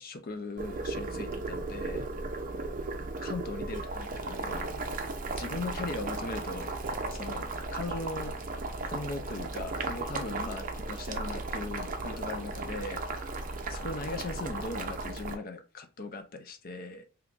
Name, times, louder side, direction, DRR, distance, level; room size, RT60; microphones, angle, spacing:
voice 1, 0.0-2.1 3.2-4.8 5.4-6.7 7.1-8.3 8.9-13.0 13.7-17.0, left 2 dB, 45° left, 0.5 m, -39 dB
Boiling, 0.6-15.3, right 3 dB, 40° right, 0.5 m, -36 dB
3.6 x 2.9 x 2.4 m
head